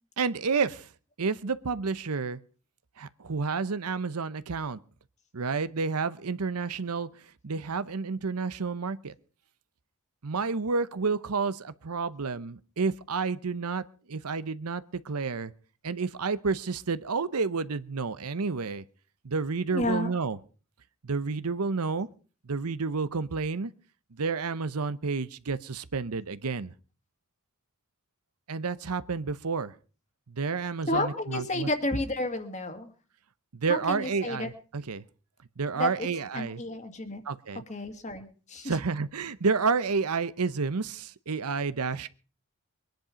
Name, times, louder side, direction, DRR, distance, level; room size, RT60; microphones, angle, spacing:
voice 1, 0.2-0.9 1.2-2.4 3.0-4.8 5.3-7.1 7.4-9.1 10.2-15.5 15.8-18.8 19.2-20.4 21.0-22.1 22.5-23.7 24.1-26.7 28.5-29.7 30.3-31.7 33.5-35.0 35.6-36.6 37.2-37.6 38.6-42.1, right 4 dB, 90° right, 15 dB, 0.8 m, -30 dB
voice 2, 19.7-20.1 30.9-32.9 33.7-34.5 35.8-35.9 36.3-37.2 37.7-38.8, left 1 dB, 30° left, 7 dB, 2.0 m, -31 dB
22.5 x 10.5 x 5.1 m, 0.39 s
head